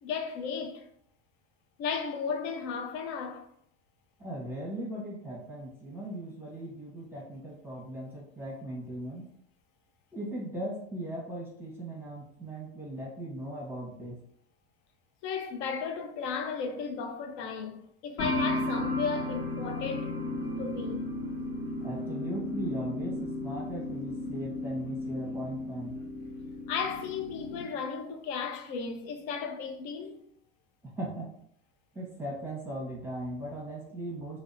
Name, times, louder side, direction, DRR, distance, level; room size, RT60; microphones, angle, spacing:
voice 1, 0.0-0.9 1.8-3.5 15.2-20.2 20.6-21.0 26.7-30.2, left 6 dB, 65° left, 0.6 m, -34 dB
voice 2, 4.2-9.3 10.1-14.2 21.8-26.0 31.0-31.3 31.9-34.4, right 1 dB, 5° right, 0.9 m, -38 dB
sound 1, 18.2-27.7, left 2 dB, 45° left, 1.1 m, -34 dB
2.7 x 2.1 x 2.5 m
supercardioid pair, 95°, 33 cm